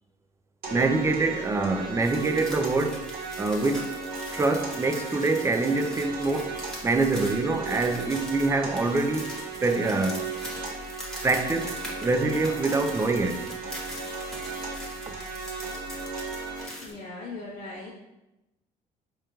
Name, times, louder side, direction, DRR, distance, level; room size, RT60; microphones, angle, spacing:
sound 1, 0.6-16.6, right 4 dB, 60° right, 1.2 m, -36 dB
voice 1, 0.7-3.1 3.4-3.9 4.3-9.3 9.6-10.3 11.2-11.7 12.0-13.5 15.1-15.2, right 3 dB, 15° right, 6 dB, 0.3 m, -25 dB
sound 2, 2.0-16.9, equal, 5° left, 1.1 m, -42 dB
voice 2, 16.7-17.9, left 3 dB, 55° left, -6 dB, 0.8 m, -39 dB
4.8 x 3.0 x 2.3 m, 0.96 s
cardioid pair, 110°, 17 cm